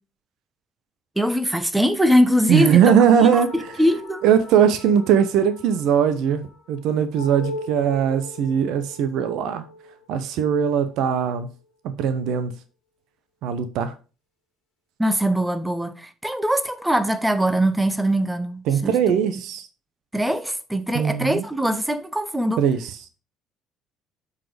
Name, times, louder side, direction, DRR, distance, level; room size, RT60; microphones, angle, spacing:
voice 1, 1.2-2.9 3.3-4.2 15.0-19.2 20.1-22.6, equal, 5° right, 0.9 m, -22 dB
voice 2, 2.5-3.7 4.2-6.4 6.7-9.6 10.1-11.5 12.0-12.5 13.4-13.9 18.7-19.7 20.9-21.4 22.6-22.8, right 8 dB, 60° right, 0.7 m, -20 dB
sound 1, 2.9-11.7, left 3 dB, 70° left, 1.6 m, -40 dB
7.5 x 4.1 x 4.9 m
figure-of-eight pair, 55°, 0 cm